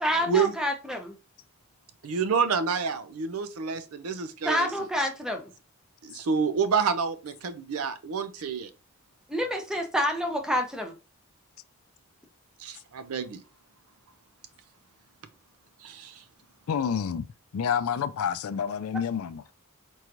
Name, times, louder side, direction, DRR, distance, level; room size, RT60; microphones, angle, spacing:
voice 1, 0.0-1.1 4.4-5.5 9.3-11.0, equal, 5° right, 0.6 m, -28 dB
voice 2, 2.0-4.7 6.0-8.7 12.6-13.4 15.8-16.1, right 6 dB, 80° right, 0.5 m, -28 dB
voice 3, 16.7-17.2 17.5-19.4, left 7 dB, 75° left, 0.4 m, -28 dB
4.5 x 3.0 x 2.5 m
head